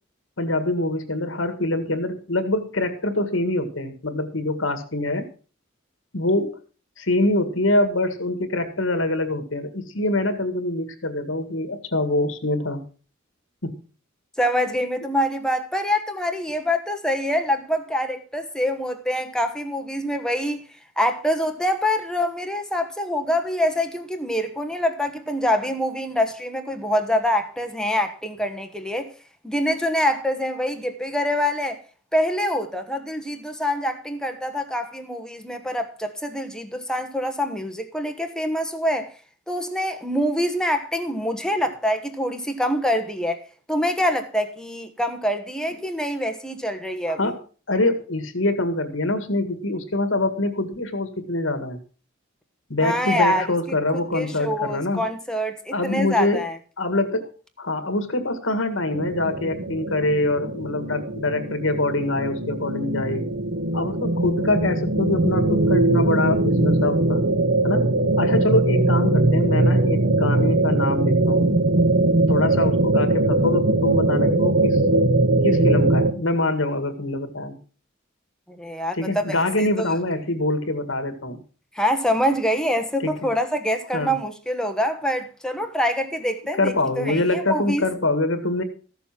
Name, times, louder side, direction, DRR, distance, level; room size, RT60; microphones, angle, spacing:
voice 1, 0.4-5.3 6.1-6.6 7.0-12.8 13.6-13.8 47.1-47.4 47.7-51.8 52.7-55.0 55.7-56.4 56.8-57.3 57.6-63.3 63.7-67.2 67.6-67.9 68.2-71.5 72.3-74.8 75.4-77.6 78.9-81.4 83.0-83.3 83.9-84.2 86.6-88.6, left 2 dB, 70° left, 1.9 m, -24 dB
voice 2, 14.4-20.6 21.0-29.1 29.4-31.8 32.1-39.1 39.5-43.4 43.7-47.3 52.8-53.5 53.9-56.6 78.5-79.8 81.7-87.8, equal, 5° left, 1.2 m, -25 dB
sound 1, 58.9-76.1, right 2 dB, 55° right, 0.9 m, -21 dB
14.5 x 7.0 x 5.9 m
head